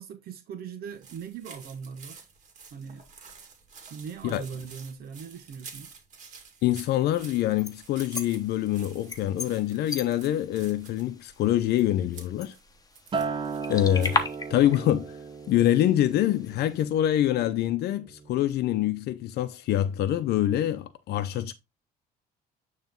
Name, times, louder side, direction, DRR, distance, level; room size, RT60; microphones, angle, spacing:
voice 1, 0.0-2.3 2.7-3.0 3.9-5.9, right 6 dB, 65° right, 1.1 m, -40 dB
sound 1, 0.9-14.6, right 5 dB, 45° right, 2.2 m, -50 dB
voice 2, 6.6-12.5 13.7-14.2 14.5-15.1 15.5-21.5, left 12 dB, 75° left, 0.7 m, -25 dB
sound 2, 7.1-16.8, left 3 dB, 20° left, 1.0 m, -38 dB
Acoustic guitar, 13.1-17.5 17.9-18.3, right 5 dB, 30° right, 0.7 m, -36 dB
9.1 x 3.2 x 3.8 m
cardioid pair, 110°, 17 cm